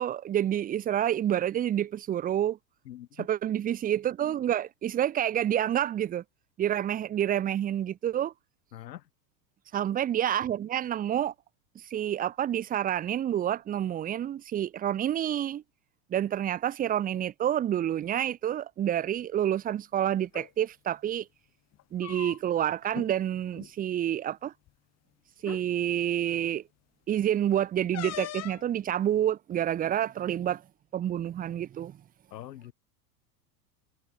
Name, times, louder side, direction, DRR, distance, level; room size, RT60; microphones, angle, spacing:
voice 1, 0.0-2.6 3.2-6.2 6.6-8.3 9.7-11.3 11.9-15.6 16.1-21.3 21.9-24.5 25.4-26.6 27.1-30.6 30.9-32.0, right 11 dB, 20° right, 0.5 m, -28 dB
voice 2, 2.9-3.3 8.7-9.0 32.3-32.7, left 13 dB, 85° left, 3.1 m, -43 dB
sound 1, 20.2-20.5 21.7-22.6 22.9-23.1 23.5-23.7 24.7-24.8 25.4-25.7 27.9-28.7, left 14 dB, 30° left, 1.2 m, -39 dB
hypercardioid pair, 110°, 49 cm